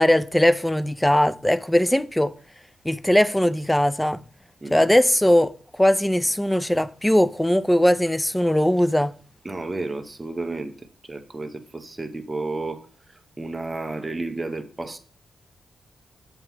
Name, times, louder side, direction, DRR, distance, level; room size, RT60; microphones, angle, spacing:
voice 1, 0.0-2.3 2.8-4.2 4.7-5.5 5.8-9.1, left 1 dB, 5° left, 0.4 m, -20 dB
voice 2, 9.4-10.7 11.1-12.8 13.4-15.0, right 2 dB, 20° right, 0.8 m, -31 dB
7.6 x 3.0 x 5.6 m
cardioid pair, 95°, 0 cm